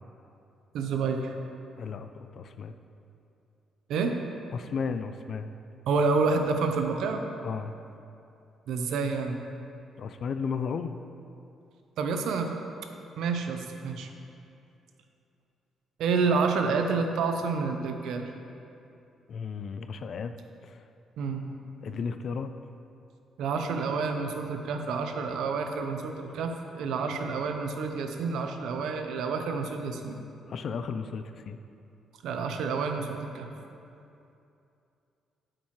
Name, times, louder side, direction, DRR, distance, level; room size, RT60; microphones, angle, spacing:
voice 1, 0.7-1.3 3.9-4.2 5.9-7.2 8.7-9.4 12.0-12.6 13.2-14.1 16.0-18.3 21.2-21.5 21.9-22.0 23.4-30.2 32.2-33.5, right 4 dB, 80° right, 5 dB, 0.7 m, -29 dB
voice 2, 1.8-2.7 4.5-5.5 7.4-7.7 10.0-11.0 19.3-20.3 20.6-20.8 21.8-22.5 30.5-31.6, left 5 dB, 60° left, 9 dB, 0.4 m, -34 dB
9.0 x 8.6 x 3.2 m, 2.7 s
cardioid pair, 90°, 0 cm